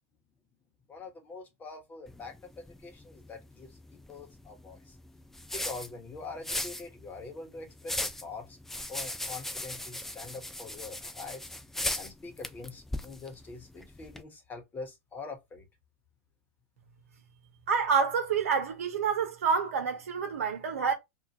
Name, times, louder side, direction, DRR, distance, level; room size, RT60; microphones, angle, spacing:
voice 1, 0.9-5.0 5.5-8.6 8.9-11.5 12.0-15.6, left 3 dB, 25° left, 1.2 m, -44 dB
sound 1, 2.1-14.2, left 1 dB, 5° left, 0.4 m, -39 dB
voice 2, 17.7-20.9, right 6 dB, 75° right, 1.0 m, -28 dB
2.7 x 2.4 x 2.8 m
hypercardioid pair, 105°, 8 cm